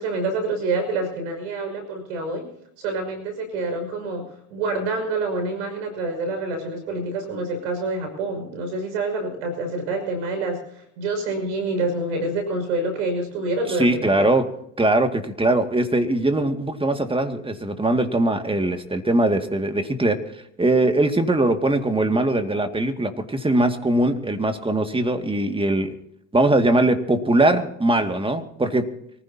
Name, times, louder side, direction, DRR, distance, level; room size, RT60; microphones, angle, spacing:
voice 1, 0.0-2.5 2.8-14.3, right 2 dB, 90° right, 6 dB, 5.9 m, -27 dB
voice 2, 13.8-14.4 14.8-20.2 20.6-25.9 26.3-28.8, right 2 dB, 15° right, 7 dB, 2.2 m, -21 dB
24.5 x 15.5 x 2.9 m, 0.73 s
hypercardioid pair, 70°, 35 cm